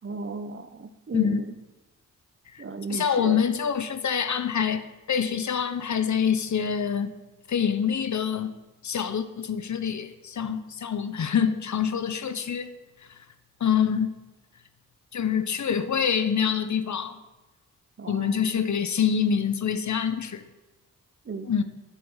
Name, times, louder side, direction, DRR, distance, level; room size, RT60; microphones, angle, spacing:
voice 1, 0.0-1.5 2.6-3.4 18.0-18.7 21.2-21.5, right 4 dB, 35° right, 1.0 m, -35 dB
voice 2, 2.9-7.1 7.5-8.5 8.8-12.7 13.6-14.1 15.1-17.2 18.1-20.5 21.5-21.6, left 7 dB, 55° left, 1.0 m, -26 dB
10.5 x 7.6 x 7.4 m
cardioid pair, 60°, 34 cm